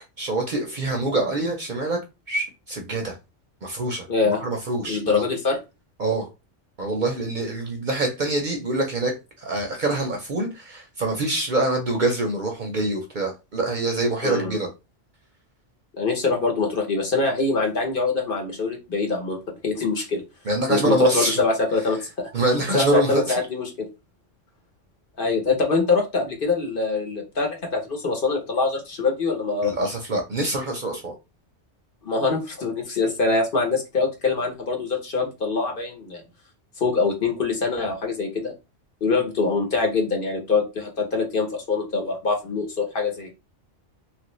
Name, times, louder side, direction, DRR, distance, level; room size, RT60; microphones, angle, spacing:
voice 1, 0.2-2.0 2.3-3.2 3.6-5.2 6.0-6.3 6.8-14.7 20.0-20.1 20.5-21.4 22.3-23.4 29.6-31.1, right 2 dB, 50° right, 0.7 m, -25 dB
voice 2, 4.1-4.4 4.8-5.6 14.2-14.6 16.0-20.2 20.7-22.3 22.7-23.9 25.2-29.7 32.0-36.2 36.8-38.5 39.0-43.3, left 4 dB, 50° left, 0.9 m, -24 dB
3.0 x 2.5 x 3.0 m
omnidirectional pair, 1.2 m